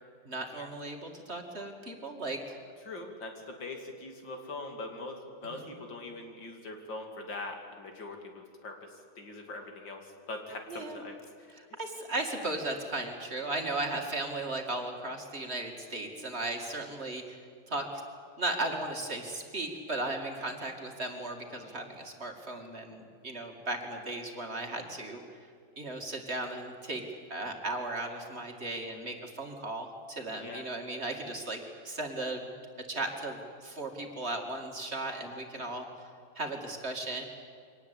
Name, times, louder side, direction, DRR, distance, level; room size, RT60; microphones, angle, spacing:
voice 1, 0.2-2.6 5.4-5.6 10.7-11.0 11.5-17.4 17.7-17.8 18.4-25.2 25.8-27.0 27.3-31.6 31.8-32.5 32.9-36.1 36.3-37.2, right 2 dB, 35° right, 3 dB, 2.6 m, -36 dB
voice 2, 2.8-11.5 30.3-30.6, left 2 dB, 85° left, 3 dB, 3.4 m, -42 dB
24.0 x 19.0 x 8.5 m, 2.2 s
omnidirectional pair, 2.0 m